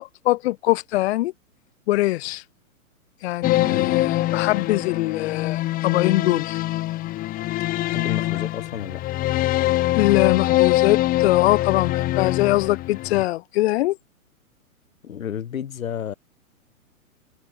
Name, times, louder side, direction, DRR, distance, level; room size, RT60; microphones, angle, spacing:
voice 1, 0.0-1.3 1.9-2.5 3.2-6.6 7.9-8.0 9.9-14.0, left 17 dB, 50° left, 1.8 m, -22 dB
sound 1, 3.4-13.2, left 16 dB, 20° left, 0.9 m, -23 dB
voice 2, 3.6-4.0 7.9-9.0 15.0-16.1, left 9 dB, 70° left, 6.1 m, -31 dB
hypercardioid pair, 130°, 42 cm